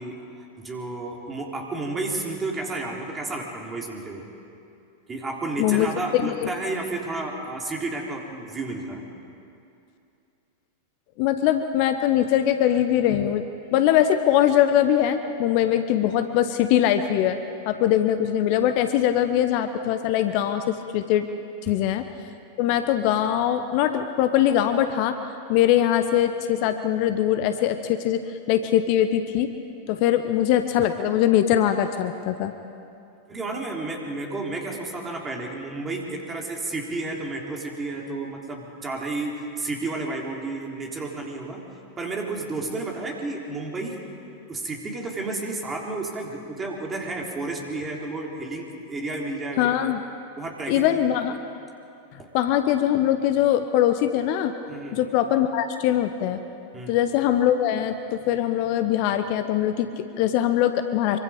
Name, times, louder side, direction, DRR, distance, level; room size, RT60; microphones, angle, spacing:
voice 1, 0.0-4.3 5.1-9.0 21.7-21.8 33.3-41.6 42.0-44.0 44.5-49.7 50.4-51.1 52.2-52.3 54.7-55.0 56.7-57.0, right 2 dB, 20° right, 0 dB, 3.7 m, -31 dB
voice 2, 6.1-6.5 11.2-13.4 13.7-17.4 17.7-21.3 21.6-22.1 22.6-25.2 25.5-29.5 29.9-32.5 49.6-50.0 50.7-51.4 52.3-54.5 54.9-56.4 56.9-61.2, left 11 dB, 45° left, 9 dB, 1.0 m, -22 dB
25.0 x 24.0 x 5.2 m, 2.6 s
figure-of-eight pair, 90°, 0 cm